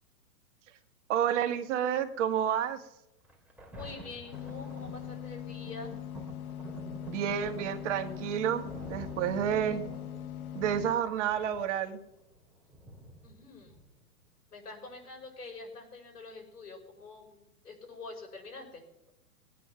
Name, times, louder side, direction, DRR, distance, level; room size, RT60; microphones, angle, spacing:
voice 1, 1.1-2.8 7.1-9.8 10.5-12.0, right 9 dB, 50° right, 8 dB, 1.7 m, -30 dB
Thunder, 3.2-14.2 14.9-15.0, right 1 dB, 5° right, 2.4 m, -48 dB
voice 2, 3.7-5.9 13.2-13.8 14.5-18.8, left 3 dB, 90° left, 1 dB, 5.8 m, -46 dB
sound 1, 4.3-10.9, left 11 dB, 70° left, 1.1 m, -41 dB
20.0 x 9.3 x 5.9 m, 0.87 s
hypercardioid pair, 140°, 45 cm